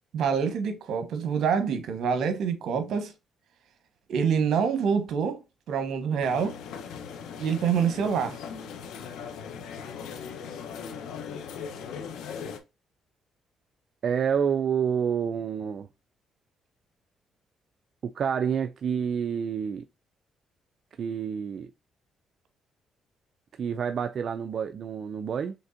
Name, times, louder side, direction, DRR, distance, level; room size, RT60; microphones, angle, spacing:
voice 1, 0.1-3.1 4.1-5.4 5.7-6.6 7.4-8.4, right 6 dB, 75° right, 1.1 m, -26 dB
sound 1, 6.2-12.6, left 6 dB, 85° left, 0.8 m, -39 dB
voice 2, 14.0-15.9 18.0-19.9 21.0-21.7 23.6-25.5, right 7 dB, 55° right, 0.3 m, -28 dB
5.2 x 3.4 x 2.5 m
cardioid pair, 90°, 0 cm